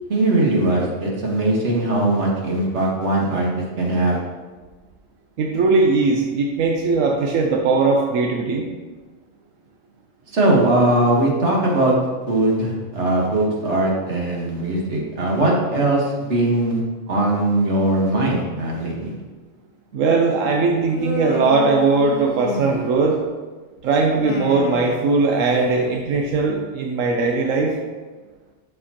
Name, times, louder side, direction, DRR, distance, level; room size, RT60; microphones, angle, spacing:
voice 1, 0.1-3.5 3.8-4.2 10.3-11.9 12.3-16.8 17.1-19.1, right 2 dB, 65° right, -2 dB, 1.7 m, -20 dB
voice 2, 5.4-8.7 19.9-23.2 23.8-27.7, right 3 dB, 90° right, 1 dB, 1.1 m, -19 dB
Human voice, 20.9-23.2 24.0-25.9, left 2 dB, 45° left, 0.4 m, -30 dB
12.0 x 4.5 x 2.9 m, 1.3 s
omnidirectional pair, 1.3 m